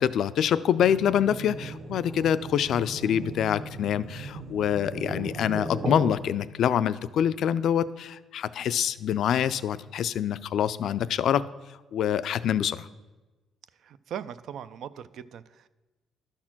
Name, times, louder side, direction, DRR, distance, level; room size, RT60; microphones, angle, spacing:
voice 1, 0.0-11.5 11.9-12.9, left 9 dB, 70° left, 15 dB, 0.3 m, -26 dB
sound 1, 0.8-6.1, right 2 dB, 50° right, 1.1 m, -37 dB
voice 2, 13.7-15.7, right 9 dB, 75° right, 15 dB, 0.3 m, -40 dB
11.5 x 4.3 x 5.9 m, 1.2 s
cardioid pair, 90°, 0 cm